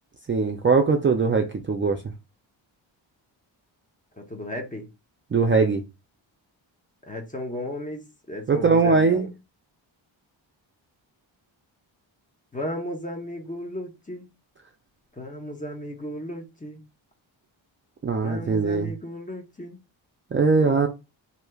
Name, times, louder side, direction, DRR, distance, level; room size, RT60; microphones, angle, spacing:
voice 1, 0.3-2.0 5.3-5.8 8.5-9.3 18.0-18.9 20.3-20.9, right 4 dB, 25° right, 0.4 m, -21 dB
voice 2, 4.1-4.9 7.0-9.3 12.5-14.3 15.1-16.8 18.2-19.8 20.6-20.9, left 1 dB, 15° left, 0.8 m, -35 dB
3.1 x 2.8 x 2.3 m
cardioid pair, 70°, 47 cm